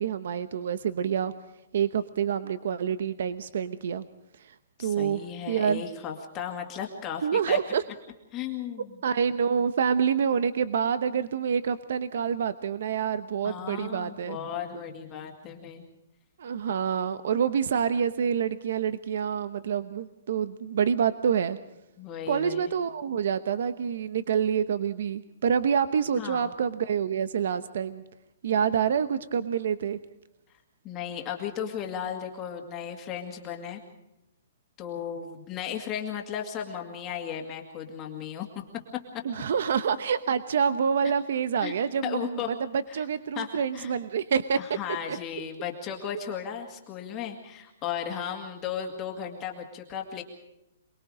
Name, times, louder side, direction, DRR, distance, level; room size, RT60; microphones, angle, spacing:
voice 1, 0.0-1.3 1.7-4.1 4.4-5.8 7.2-7.8 9.0-14.4 14.7-14.8 16.4-21.6 22.3-28.0 28.4-30.0 39.2-44.6 45.1-45.2, right 7 dB, 55° right, 13 dB, 1.0 m, -27 dB
voice 2, 4.8-7.6 8.3-9.0 13.4-15.8 22.0-22.7 26.2-26.5 30.8-33.8 34.8-38.5 41.6-41.7 42.0-42.5 42.9-43.0 43.4-43.9 44.6-50.2, left 8 dB, 15° left, 1 dB, 2.1 m, -35 dB
28.0 x 21.0 x 5.0 m, 0.86 s
hypercardioid pair, 175°, 0 cm